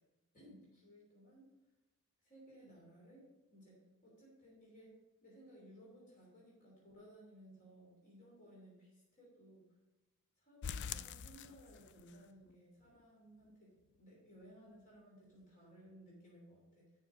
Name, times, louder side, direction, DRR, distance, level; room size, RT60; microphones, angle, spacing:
voice 1, 0.3-1.6 2.2-9.7 10.4-16.9, equal, 35° left, -4 dB, 3.0 m, -60 dB
sound 1, 10.6-12.2 12.5-12.6 13.0-13.1 13.5-13.6, left 7 dB, 50° left, 0.3 m, -45 dB
6.9 x 5.7 x 6.3 m, 1.1 s
head